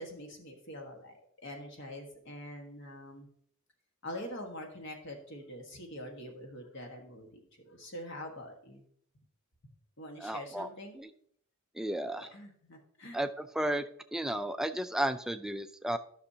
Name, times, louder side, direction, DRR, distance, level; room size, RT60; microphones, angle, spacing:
voice 1, 0.0-3.3 4.0-7.4 7.6-8.8 10.0-11.0 12.2-13.2, left 1 dB, 55° left, 2 dB, 1.5 m, -44 dB
voice 2, 10.2-10.7 11.0-11.1 11.8-12.3 13.1-13.8 14.1-16.0, right 1 dB, ahead, 9 dB, 0.3 m, -33 dB
13.0 x 6.1 x 2.8 m, 0.66 s
head